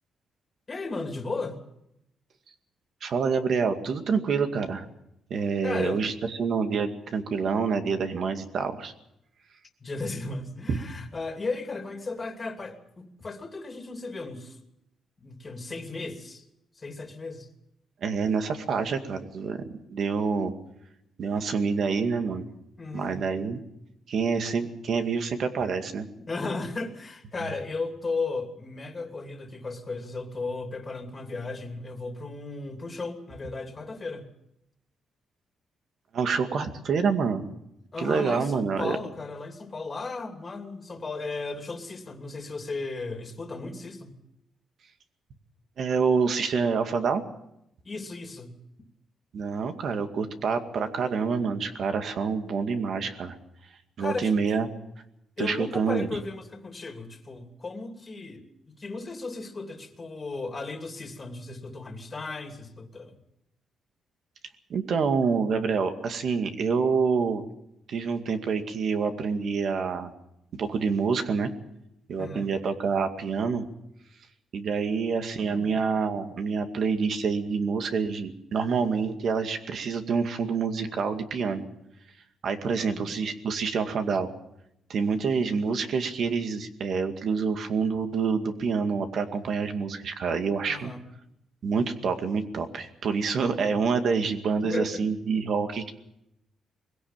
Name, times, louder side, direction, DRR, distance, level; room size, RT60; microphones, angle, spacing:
voice 1, 0.7-1.6 5.6-6.0 9.8-14.6 15.2-16.4 16.8-17.5 22.8-23.2 26.2-34.3 37.9-44.1 47.8-48.5 54.0-54.6 55.4-58.4 58.8-63.2 72.2-72.5 75.4-75.7 82.8-83.1 90.6-91.1 94.6-95.1, left 3 dB, 25° left, 4 dB, 2.8 m, -35 dB
voice 2, 3.0-4.9 5.3-8.9 10.7-10.8 18.0-19.6 19.9-20.5 21.2-22.5 22.9-23.6 24.1-26.1 36.1-37.5 38.0-39.0 45.8-47.2 49.3-53.3 54.0-54.7 55.4-56.1 64.7-67.4 67.9-70.1 70.5-71.5 72.1-73.6 74.5-81.6 82.4-84.3 84.9-90.9 91.6-95.9, right 5 dB, 60° right, 7 dB, 2.2 m, -27 dB
21.5 x 16.5 x 7.4 m, 0.81 s
cardioid pair, 115°, 0 cm